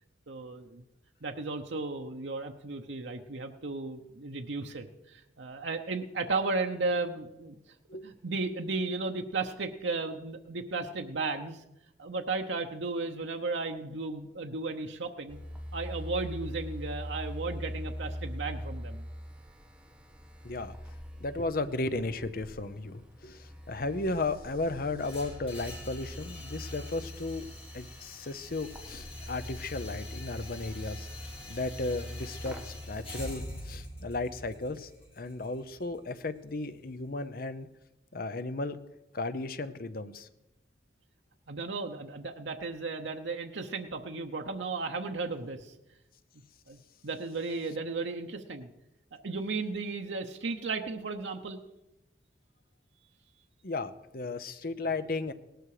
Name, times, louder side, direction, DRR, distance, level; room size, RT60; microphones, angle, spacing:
voice 1, 0.3-0.8 1.2-7.5 8.0-11.6 12.0-15.4 15.7-19.0 41.5-45.7 46.7-48.7 49.1-51.6, right 3 dB, 85° right, 3 dB, 0.9 m, -35 dB
sound 1, 15.3-33.3, equal, 5° right, 1.3 m, -43 dB
voice 2, 20.4-20.8 21.2-27.4 27.7-31.1 31.5-34.9 35.2-37.7 38.1-38.8 39.1-40.3 53.6-55.3, left 2 dB, 55° left, 12 dB, 0.8 m, -35 dB
sound 2, 25.0-37.0, left 1 dB, 35° left, 4.9 m, -45 dB
18.0 x 12.5 x 5.0 m, 0.91 s
head